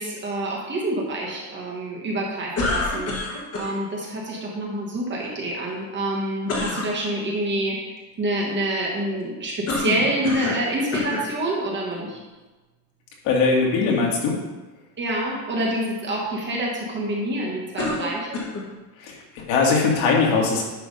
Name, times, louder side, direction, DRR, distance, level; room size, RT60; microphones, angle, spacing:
voice 1, 0.0-12.2 15.0-18.4, right 1 dB, 20° right, -3 dB, 1.4 m, -27 dB
sound 1, 2.6-3.7 6.5-6.9 9.7-10.7 10.9-11.3 12.1-12.2 17.8-18.7, left 3 dB, 30° left, 1.5 m, -27 dB
voice 2, 13.2-14.4 19.0-20.6, left 4 dB, 65° left, -2 dB, 2.1 m, -20 dB
10.0 x 3.5 x 5.4 m, 1.2 s
cardioid pair, 160°, 49 cm